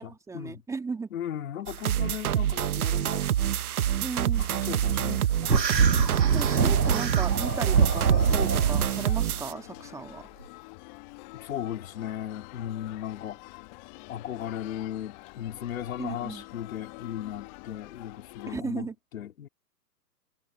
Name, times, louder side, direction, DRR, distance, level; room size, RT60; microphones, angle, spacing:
voice 1, 0.0-1.1 4.0-4.5 6.3-10.3 16.0-16.4 18.5-18.9, right 4 dB, 5° right, 1.8 m, -36 dB
voice 2, 1.1-3.3 4.4-5.7 11.3-13.6 14.1-19.5, left 11 dB, 55° left, 3.5 m, -36 dB
sound 1, 1.7-9.5, right 11 dB, 65° right, 0.7 m, -27 dB
sound 2, 5.5-8.9, right 5 dB, 85° right, 1.7 m, -24 dB
sound 3, 7.3-18.6, left 26 dB, 30° left, 1.5 m, -46 dB
hypercardioid pair, 135°, 48 cm